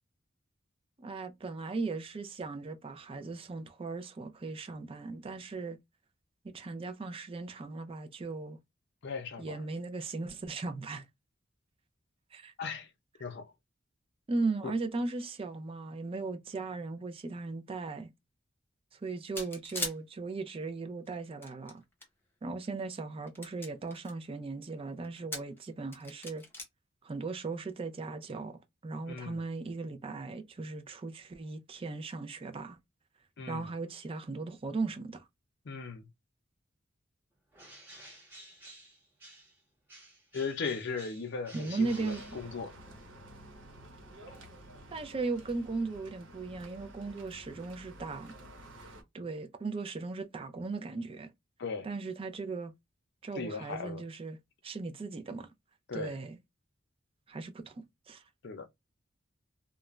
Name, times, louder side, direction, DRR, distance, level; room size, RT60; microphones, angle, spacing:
voice 1, 1.0-5.8 6.4-8.6 9.4-11.0 12.3-12.5 14.3-18.1 18.9-21.8 22.4-26.4 27.0-32.8 33.5-35.2 41.5-42.2 44.9-48.3 48.8-48.9 49.1-51.3 51.8-52.7 53.2-54.4 54.6-55.5 55.9-56.4 57.3-58.2, right 3 dB, 30° right, 0.4 m, -37 dB
voice 2, 9.0-9.6 12.6-12.9 13.2-13.5 14.6-14.7 29.1-29.4 33.4-33.7 35.6-36.1 40.3-42.8 44.3-44.4 51.6-51.9 53.3-54.1 55.9-56.2 58.4-58.7, left 5 dB, 60° left, 0.6 m, -38 dB
sound 1, 19.4-20.0 21.1-22.1 22.7-22.8 23.3-24.1 25.0-25.6 25.9-26.6, left 1 dB, 10° left, 0.8 m, -39 dB
Bird, 37.5-39.6 39.9-43.0, right 1 dB, 10° right, 1.2 m, -53 dB
sound 2, 41.8-49.0, right 1 dB, 85° right, 1.0 m, -51 dB
2.4 x 2.1 x 3.0 m
head